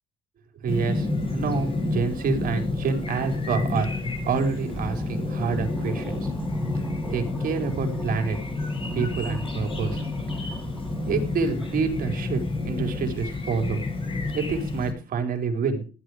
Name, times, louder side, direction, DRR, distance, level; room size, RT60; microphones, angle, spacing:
voice 1, 0.6-0.9 1.3-3.9 4.3-6.3 7.1-8.4 8.9-10.0 11.1-13.8 14.3-15.9, right 5 dB, 55° right, 5 dB, 4.5 m, -27 dB
Chirp tweet, 0.7-14.9, left 2 dB, 30° left, 7.6 m, -30 dB
sound 1, 4.7-11.9, right 1 dB, ahead, 3.1 m, -39 dB
15.5 x 11.5 x 5.0 m, 0.36 s
cardioid pair, 110°, 17 cm